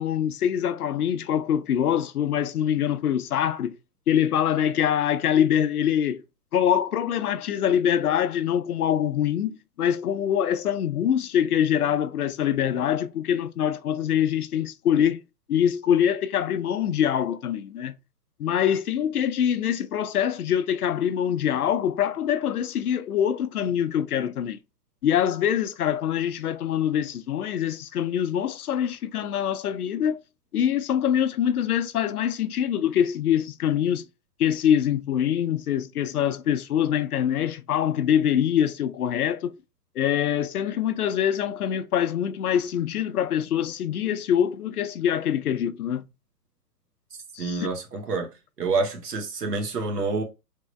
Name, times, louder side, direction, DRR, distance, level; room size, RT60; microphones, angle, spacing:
voice 1, 0.0-3.8 4.1-6.2 6.5-15.2 15.5-17.9 18.4-24.6 25.0-30.2 30.5-34.0 34.4-39.6 40.0-46.0 47.3-47.7, left 9 dB, 65° left, 0.6 m, -24 dB
voice 2, 47.4-48.3 48.6-50.2, right 3 dB, 70° right, 1.5 m, -27 dB
3.6 x 3.4 x 3.1 m
figure-of-eight pair, 130°, 49 cm